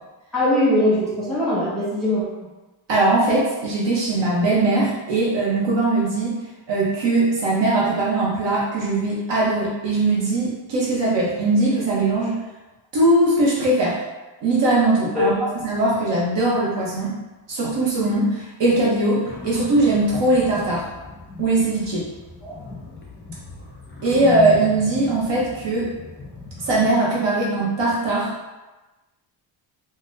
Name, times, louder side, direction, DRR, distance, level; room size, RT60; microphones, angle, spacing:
voice 1, 0.3-2.2 15.1-15.5 22.4-22.5, left 1 dB, ahead, -11 dB, 1.3 m, -21 dB
voice 2, 2.9-6.4 6.7-12.3 12.9-14.0 14.4-15.3 15.6-17.1 17.5-20.9 21.4-22.1 24.0-25.9 26.6-28.3, right 2 dB, 60° right, -5 dB, 0.8 m, -20 dB
sound 1, 19.2-26.9, left 3 dB, 25° left, 0.3 m, -36 dB
3.9 x 2.1 x 2.5 m, 1.1 s
cardioid pair, 155°, 48 cm